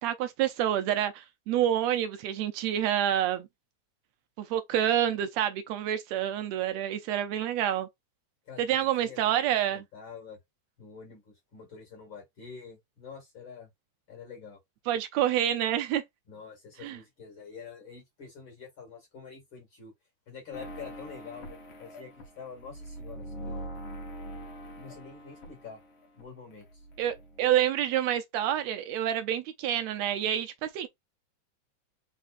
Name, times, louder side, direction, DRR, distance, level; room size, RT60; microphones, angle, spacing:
voice 1, 0.0-3.5 4.4-7.9 8.6-9.8 14.9-16.0 16.8-17.0 27.0-30.9, right 11 dB, 80° right, 1.6 m, -28 dB
voice 2, 8.5-9.4 9.7-10.4 10.8-13.7 14.1-14.6 16.3-19.9 20.3-23.6 24.7-25.8 26.2-26.9, left 6 dB, 45° left, 2.4 m, -47 dB
sound 1, 20.5-26.2 26.5-27.7, equal, 65° left, 1.3 m, -43 dB
4.9 x 3.8 x 2.5 m
omnidirectional pair, 3.5 m